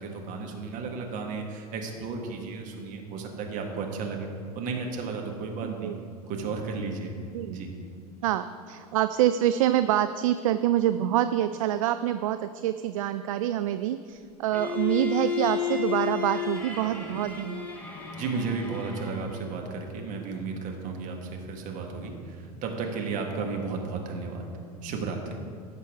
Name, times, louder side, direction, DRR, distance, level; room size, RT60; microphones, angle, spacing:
voice 1, 0.0-4.3 4.6-5.9 6.3-7.1 7.5-7.7 18.1-24.5 24.8-25.4, right 4 dB, 40° right, 2 dB, 1.7 m, -33 dB
voice 2, 5.6-6.0 7.3-7.6 8.2-17.8, right 12 dB, 60° right, 11 dB, 0.4 m, -26 dB
Bowed string instrument, 14.5-19.4, left 7 dB, 10° left, 1.8 m, -32 dB
16.0 x 6.7 x 3.7 m, 2.3 s
figure-of-eight pair, 80°, 20 cm